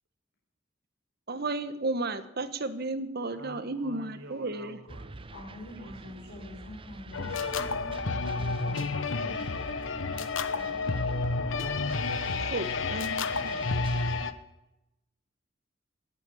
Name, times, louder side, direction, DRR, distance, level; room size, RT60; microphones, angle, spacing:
voice 1, 1.3-4.8 12.4-13.6, right 2 dB, 55° right, 12 dB, 1.3 m, -33 dB
voice 2, 3.3-5.3 5.8-6.5 8.2-10.2, right 1 dB, 90° right, 2 dB, 1.9 m, -49 dB
sound 1, 4.9-14.3, right 2 dB, 25° right, 0.7 m, -45 dB
voice 3, 5.3-8.9 9.1-9.4 10.5-11.0, left 1 dB, 60° left, -3 dB, 4.3 m, -46 dB
sound 2, 7.1-14.3, left 4 dB, 80° left, 1.1 m, -30 dB
18.0 x 8.4 x 8.6 m, 0.92 s
head